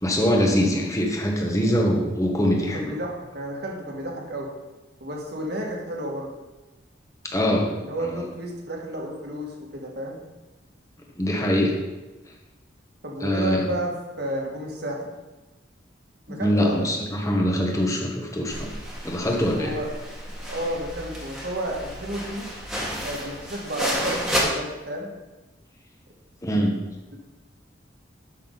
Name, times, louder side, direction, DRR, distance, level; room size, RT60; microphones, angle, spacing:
voice 1, 0.0-2.9 7.3-7.7 8.0-8.3 11.2-11.7 13.2-13.6 16.4-18.7 19.1-19.7 26.4-26.8, equal, 15° left, 0 dB, 1.3 m, -23 dB
voice 2, 2.5-4.5 5.0-6.3 7.7-10.2 13.0-13.9 14.2-15.1 16.3-16.9 19.6-19.9 20.4-22.5 23.0-25.1 27.1-27.2, right 1 dB, 55° right, -1 dB, 1.9 m, -31 dB
sound 1, 18.5-24.4, equal, ahead, 1.7 m, -32 dB
12.0 x 6.0 x 4.0 m, 1.1 s
head